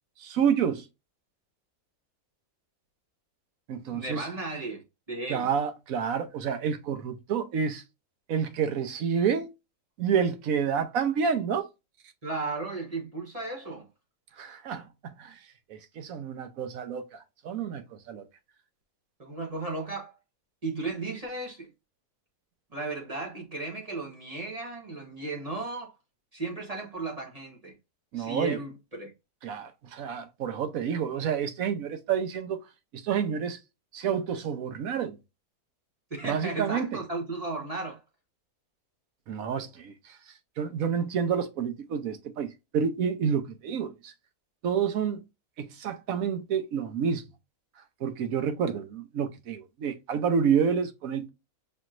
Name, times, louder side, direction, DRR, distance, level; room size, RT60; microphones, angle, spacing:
voice 1, 0.2-0.9 3.7-4.3 5.3-7.8 8.3-9.5 10.0-11.7 14.4-15.4 15.7-18.2 28.1-28.6 29.4-32.6 32.9-33.6 33.9-35.2 36.2-37.0 39.3-40.2 40.6-44.1 44.6-45.2 45.6-47.2 48.0-51.3, right 7 dB, 75° right, 1.1 m, -29 dB
voice 2, 3.9-5.5 12.2-13.9 19.2-20.1 20.6-21.7 22.7-25.9 26.3-27.7 28.1-29.1 36.1-38.0, right 3 dB, 25° right, 1.1 m, -35 dB
5.5 x 3.0 x 2.5 m
omnidirectional pair, 1.5 m